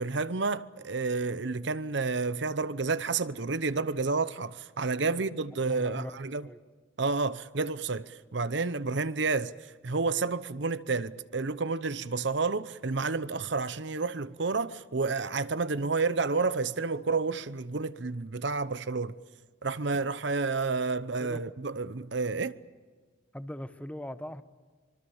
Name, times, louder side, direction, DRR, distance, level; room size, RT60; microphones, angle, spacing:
voice 1, 0.0-6.5 7.0-19.2 19.6-22.6, right 4 dB, 65° right, 0.8 m, -30 dB
voice 2, 5.6-6.1 6.4-6.6 21.2-21.4 23.3-24.4, equal, 5° left, 0.9 m, -40 dB
25.0 x 24.5 x 7.2 m
head